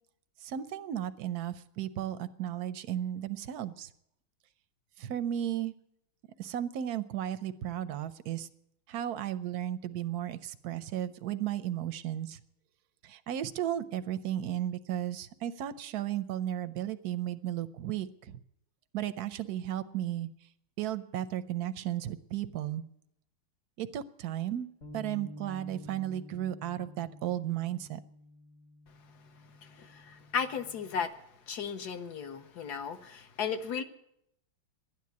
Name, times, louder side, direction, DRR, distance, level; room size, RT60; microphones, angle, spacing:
voice 1, 0.4-3.9 5.0-5.7 6.4-8.5 8.9-12.4 13.0-18.4 18.9-20.3 20.8-22.8 23.8-24.7 24.9-28.0, right 11 dB, 70° right, 13 dB, 0.9 m, -34 dB
Bass guitar, 24.8-31.1, left 1 dB, 40° left, 1.5 m, -50 dB
voice 2, 29.6-31.1 31.5-33.8, left 6 dB, 60° left, 9 dB, 1.3 m, -35 dB
12.5 x 10.5 x 9.4 m, 0.77 s
omnidirectional pair, 2.3 m